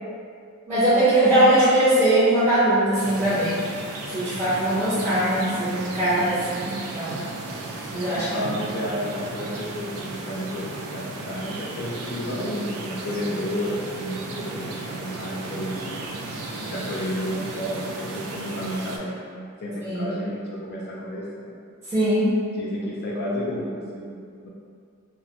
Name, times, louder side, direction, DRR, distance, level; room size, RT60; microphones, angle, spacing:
voice 1, 0.7-3.6 4.1-7.2 7.9-8.3 19.8-20.1 21.9-22.3, right 1 dB, 10° right, -12 dB, 0.5 m, -20 dB
sound 1, 3.0-19.0, right 2 dB, 90° right, 0.3 m, -35 dB
voice 2, 8.1-16.0 16.7-21.5 22.5-24.5, equal, 45° left, -5 dB, 0.3 m, -31 dB
2.4 x 2.1 x 2.8 m, 2.3 s
head